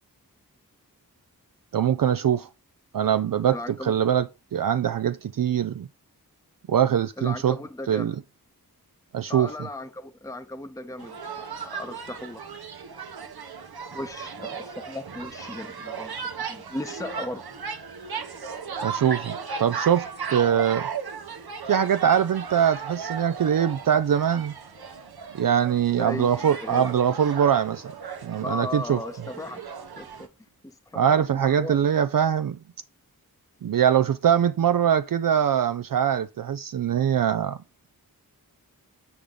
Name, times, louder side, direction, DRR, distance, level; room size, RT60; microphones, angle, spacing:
voice 1, 1.7-2.5 2.9-3.6 3.8-4.3 4.5-5.9 6.7-7.6 7.9-8.2 9.1-9.5 18.8-20.8 21.7-24.5 25.3-27.9 28.2-29.0 31.0-32.6 33.6-37.6, right 9 dB, 65° right, 0.5 m, -22 dB
voice 2, 3.5-3.9 7.2-8.2 9.3-12.4 13.9-16.2 16.5-17.4 25.9-26.9 28.4-30.3 30.6-31.9, left 2 dB, 10° left, 0.8 m, -37 dB
sound 1, 11.0-30.3, right 5 dB, 85° right, 1.0 m, -36 dB
8.5 x 4.9 x 3.8 m
wide cardioid pair, 55°, 36 cm